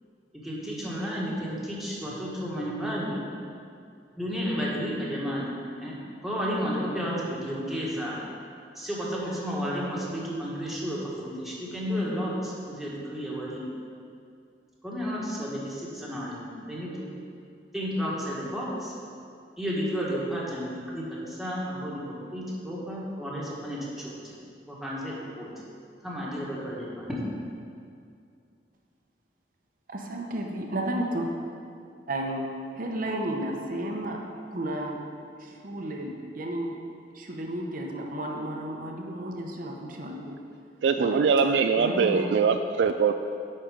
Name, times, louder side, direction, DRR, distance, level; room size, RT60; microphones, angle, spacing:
voice 1, 0.4-3.2 4.2-5.5 5.8-6.0 6.2-8.2 8.7-13.6 14.8-17.1 17.7-18.9 19.6-24.3 24.7-25.5 26.0-27.1, equal, ahead, -6 dB, 1.5 m, -32 dB
voice 2, 29.9-31.2 32.1-32.5 32.7-34.2 34.5-35.0 35.4-36.8 37.1-40.4 41.0-41.1 41.8-42.2, right 1 dB, 50° right, 0 dB, 0.8 m, -32 dB
voice 3, 40.8-43.1, right 5 dB, 70° right, 8 dB, 0.3 m, -22 dB
9.9 x 4.3 x 5.1 m, 2.4 s
head